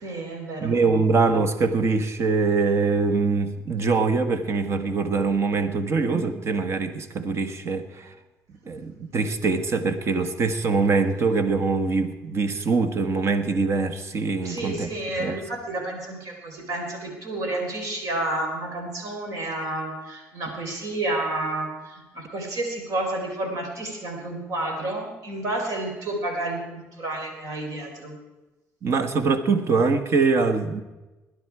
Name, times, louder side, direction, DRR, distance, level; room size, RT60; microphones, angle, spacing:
voice 1, 0.0-0.7 14.4-28.2, right 2 dB, 65° right, 2 dB, 4.1 m, -30 dB
voice 2, 0.6-8.1 8.7-14.9 15.2-15.4 28.8-30.8, right 4 dB, 50° right, 9 dB, 1.4 m, -23 dB
20.0 x 10.5 x 4.8 m, 1.1 s
cardioid pair, 95°, 6 cm